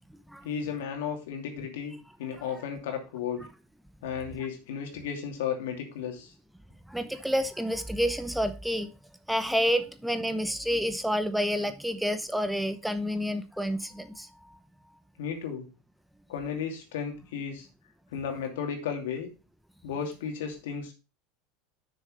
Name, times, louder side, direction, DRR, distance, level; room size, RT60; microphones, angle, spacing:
voice 1, 0.4-3.4 4.0-6.3 15.2-15.7 16.3-17.7 18.1-19.3 19.8-20.9, left 7 dB, 90° left, 2.5 m, -34 dB
voice 2, 6.9-8.9 9.3-14.6, equal, ahead, 0.7 m, -29 dB
6.6 x 6.3 x 5.0 m
supercardioid pair, 130°, 0 cm